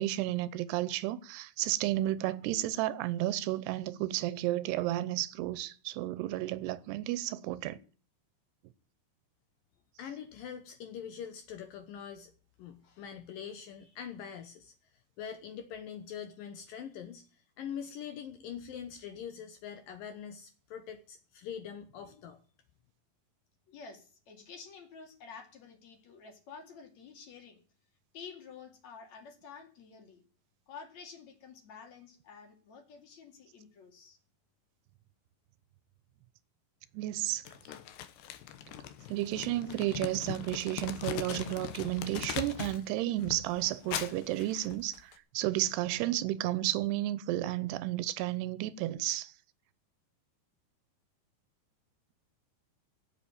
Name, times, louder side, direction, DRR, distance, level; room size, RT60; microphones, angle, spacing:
voice 1, 0.0-7.8 36.9-37.4 39.1-49.3, right 15 dB, 90° right, 2.9 m, -32 dB
voice 2, 10.0-12.3 12.6-14.7 15.2-17.3 17.6-22.4, left 8 dB, 70° left, 2.5 m, -43 dB
voice 3, 23.7-27.6 28.1-30.2 30.7-34.2, left 5 dB, 50° left, 3.5 m, -50 dB
Crumpling crinkling, 37.4-42.8 43.2-45.1, left 11 dB, 85° left, 3.2 m, -40 dB
16.0 x 8.0 x 8.7 m
omnidirectional pair, 4.6 m